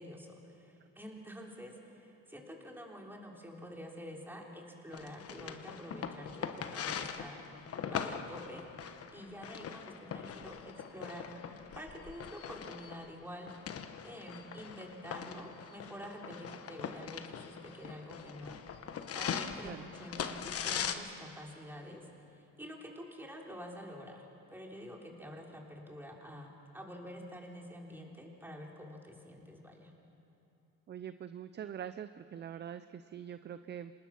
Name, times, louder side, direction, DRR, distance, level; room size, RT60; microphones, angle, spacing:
voice 1, 0.0-8.6 9.1-13.6 14.0-22.0 22.3-29.9, equal, 5° right, 0 dB, 3.5 m, -48 dB
sound 1, 4.9-20.9, left 7 dB, 45° left, 1.3 m, -41 dB
voice 2, 30.9-33.9, right 9 dB, 35° right, 12 dB, 0.5 m, -44 dB
26.5 x 19.5 x 5.9 m, 2.7 s
cardioid pair, 100°, 32 cm